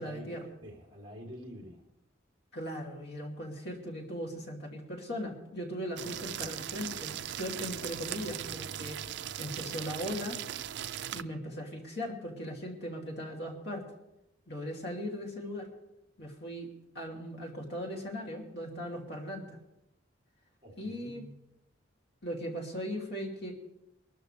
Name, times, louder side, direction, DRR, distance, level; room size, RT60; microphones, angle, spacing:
voice 1, 0.0-0.5 2.5-9.0 9.4-10.4 11.1-13.8 14.5-15.7 16.2-16.7 16.9-19.6 20.8-21.2 22.2-23.5, equal, 55° left, 0 dB, 2.8 m, -38 dB
voice 2, 0.6-1.8 20.6-21.4, equal, 25° right, -1 dB, 3.2 m, -47 dB
sound 1, 6.0-11.2, right 10 dB, 60° right, 0.4 m, -39 dB
23.0 x 13.0 x 3.4 m, 0.85 s
head